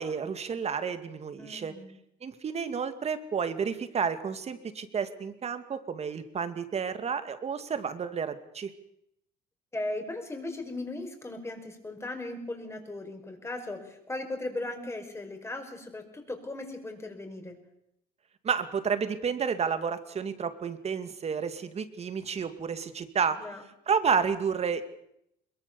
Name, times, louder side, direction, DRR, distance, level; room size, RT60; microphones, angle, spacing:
voice 1, 0.0-1.7 2.2-8.7 18.4-23.4 23.9-24.8, right 6 dB, 40° right, 10 dB, 2.3 m, -31 dB
voice 2, 1.4-1.9 9.7-17.6 23.4-23.6, left 2 dB, 15° left, 5 dB, 5.3 m, -37 dB
22.5 x 22.5 x 7.0 m, 0.76 s
cardioid pair, 110°, 17 cm